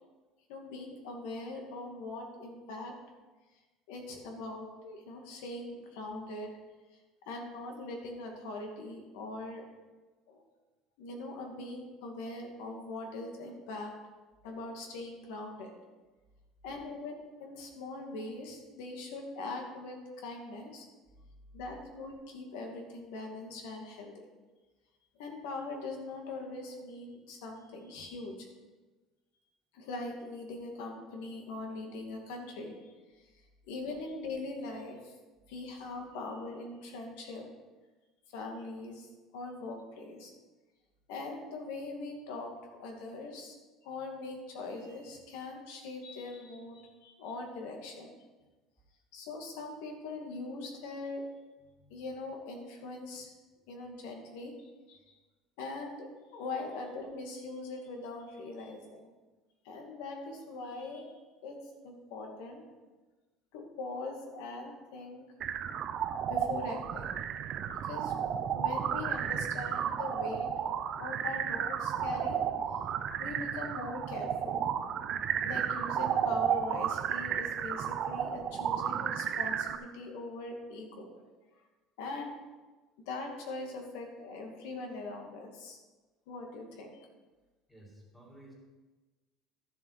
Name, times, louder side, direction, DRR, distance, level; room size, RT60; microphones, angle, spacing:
voice 1, 0.5-2.9 3.9-6.5 7.3-9.6 10.3-10.4 11.0-13.9 14.4-15.7 16.6-20.9 21.5-24.1 25.2-28.5 29.7-33.3 33.7-35.1 35.5-37.5 38.3-39.1 39.3-40.3 41.1-42.5 42.8-43.6 43.8-48.2 49.1-51.2 51.9-53.3 53.7-55.2 55.6-59.1 59.6-61.1 61.4-61.6 61.8-62.6 63.5-65.2 66.3-67.3 67.6-68.1 68.5-70.5 71.0-72.4 73.2-74.6 75.4-81.2 82.0-82.4 83.1-85.8 86.3-87.0, left 2 dB, 85° left, 2 dB, 2.3 m, -41 dB
sound 1, 65.4-79.8, right 8 dB, 35° right, 0.5 m, -33 dB
voice 2, 87.7-88.5, right 1 dB, 5° left, -3 dB, 2.3 m, -55 dB
12.5 x 7.4 x 4.9 m, 1.2 s
cardioid pair, 175°, 0 cm